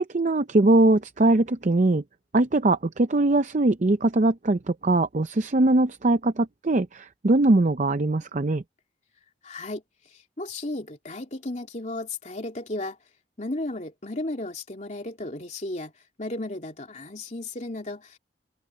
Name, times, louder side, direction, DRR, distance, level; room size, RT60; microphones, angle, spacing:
voice 1, 0.0-2.0 2.3-8.6, right 2 dB, 45° right, 0.6 m, -21 dB
voice 2, 9.4-9.8 10.1-13.0 13.4-15.9 16.2-18.2, left 2 dB, 40° left, 3.0 m, -34 dB
open air
head